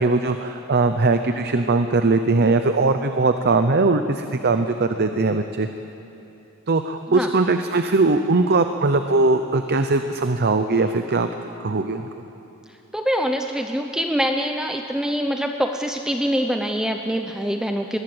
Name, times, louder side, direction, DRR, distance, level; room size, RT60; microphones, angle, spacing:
voice 1, 0.0-5.7 6.7-11.3 11.6-12.2, right 3 dB, 50° right, 8 dB, 0.8 m, -20 dB
voice 2, 12.9-18.0, equal, 5° right, 4 dB, 0.7 m, -24 dB
21.0 x 19.5 x 7.9 m, 2.9 s
head